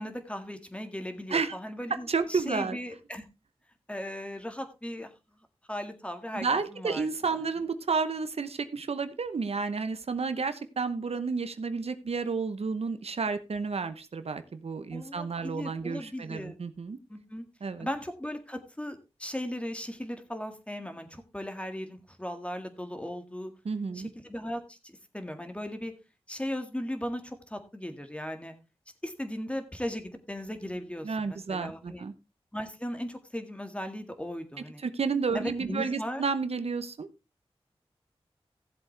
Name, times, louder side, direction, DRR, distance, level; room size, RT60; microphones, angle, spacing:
voice 1, 0.0-3.3 3.9-5.1 5.7-7.1 14.9-16.5 17.1-17.5 17.8-23.5 23.9-25.9 26.3-28.5 29.0-32.0 32.5-34.8 35.3-36.2, equal, 10° left, 7 dB, 1.8 m, -37 dB
voice 2, 2.1-2.8 6.3-17.0 17.6-17.9 23.6-24.1 31.0-32.1 34.8-37.1, right 4 dB, 80° right, 11 dB, 0.8 m, -31 dB
16.0 x 7.6 x 3.3 m, 0.28 s
wide cardioid pair, 65°, 10 cm